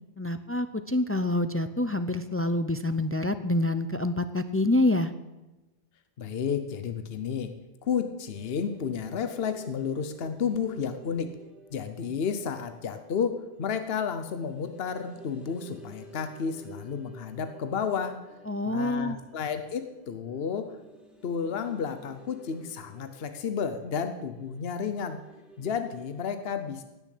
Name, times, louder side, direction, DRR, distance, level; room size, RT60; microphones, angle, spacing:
voice 1, 0.2-5.1 18.5-19.2, left 2 dB, 20° left, 11 dB, 0.4 m, -27 dB
voice 2, 6.2-7.5 7.8-11.4 11.7-18.3 18.7-20.7 21.2-25.2 25.6-26.8, left 6 dB, 60° left, 9 dB, 1.1 m, -32 dB
sound 1, 8.3-26.2, right 1 dB, ahead, 2.1 m, -53 dB
16.5 x 6.9 x 8.4 m, 1.1 s
omnidirectional pair, 1.1 m